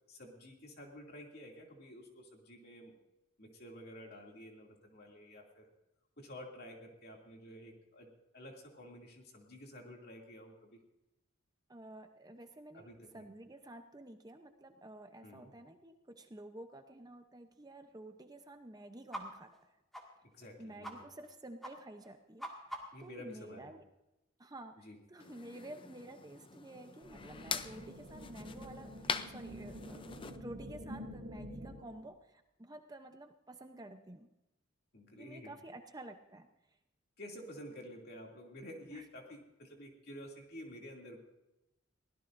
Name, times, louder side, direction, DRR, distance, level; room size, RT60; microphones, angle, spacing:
voice 1, 0.1-2.9 3.4-5.7 6.2-10.8 12.7-13.3 15.2-15.5 20.3-21.1 22.9-23.7 24.8-25.0 34.9-35.5 37.2-41.2, equal, 50° left, 0 dB, 2.6 m, -51 dB
voice 2, 11.7-19.8 20.6-23.8 24.4-34.3 35.2-36.5 38.9-39.0, right 1 dB, 20° right, 6 dB, 0.7 m, -51 dB
sound 1, 19.1-19.2 19.5-19.6 19.9-20.0 20.4-20.5 20.8-21.0 21.2-21.3 21.6-21.7 22.0-23.1, equal, ahead, 2.0 m, -44 dB
sound 2, 25.2-30.4, left 6 dB, 25° left, 0.5 m, -43 dB
sound 3, 27.0-32.0, equal, 50° right, 4.0 m, -48 dB
22.5 x 16.5 x 2.6 m, 0.93 s
head